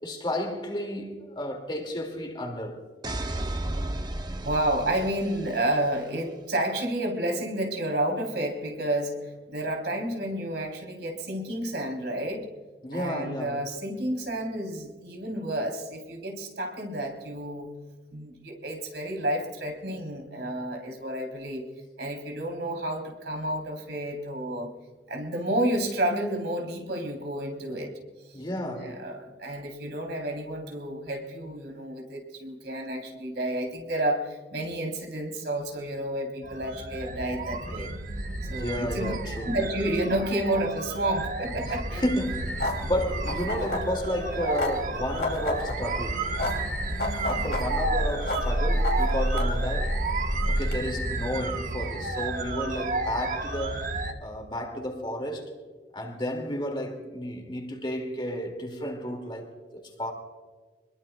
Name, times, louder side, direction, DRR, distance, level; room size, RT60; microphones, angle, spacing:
voice 1, 0.0-2.8 12.8-13.6 28.3-29.0 38.5-39.5 41.6-46.3 47.2-49.9 50.5-53.9 54.2-55.5 55.9-60.1, equal, 25° left, 2.3 m, -32 dB
sound 1, 3.0-5.9, right 1 dB, 25° right, 0.7 m, -33 dB
voice 2, 4.5-12.5 12.9-17.7 18.1-21.6 22.0-24.7 25.1-27.9 28.3-28.4 28.8-37.9 38.5-39.1 39.4-42.1 46.9-47.5, right 1 dB, 75° right, 3.5 m, -30 dB
sound 2, 36.4-54.1, right 2 dB, 45° right, 1.2 m, -32 dB
sound 3, 42.0-50.8, equal, 65° left, 2.9 m, -30 dB
26.5 x 21.0 x 2.3 m
head